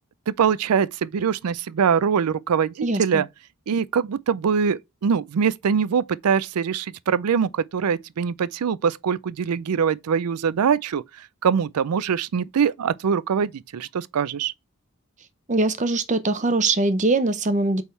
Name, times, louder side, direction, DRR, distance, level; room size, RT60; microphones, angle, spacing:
voice 1, 0.3-3.3 3.7-11.0 11.4-14.5, right 7 dB, 90° right, 0.4 m, -23 dB
voice 2, 2.8-3.2 15.5-17.8, right 2 dB, 35° right, 0.7 m, -22 dB
8.3 x 3.6 x 4.4 m
head